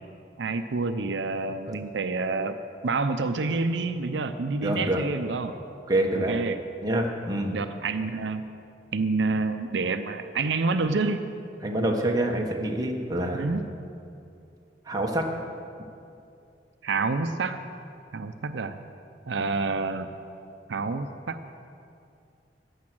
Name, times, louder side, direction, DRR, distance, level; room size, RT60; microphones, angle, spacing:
voice 1, 0.4-5.6 6.1-6.6 7.5-8.4 8.9-11.2 13.3-13.6 16.8-17.6 18.1-18.8 19.3-20.2 20.7-21.4, right 3 dB, 80° right, 9 dB, 0.6 m, -28 dB
voice 2, 4.6-5.0 5.9-6.3 6.8-7.6 11.6-13.6 14.9-15.3, right 1 dB, 20° right, 1 dB, 1.2 m, -26 dB
15.0 x 9.6 x 6.1 m, 2.6 s
head